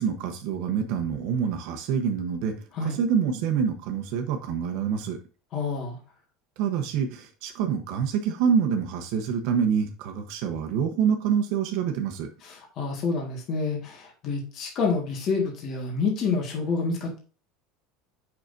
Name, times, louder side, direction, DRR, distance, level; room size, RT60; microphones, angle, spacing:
voice 1, 0.0-2.5 2.8-5.2 6.6-12.3, right 7 dB, 55° right, 5 dB, 1.0 m, -26 dB
voice 2, 5.5-6.0 12.4-17.2, left 4 dB, 35° left, 0 dB, 1.8 m, -28 dB
7.6 x 5.8 x 2.7 m, 0.37 s
cardioid pair, 170°, 0 cm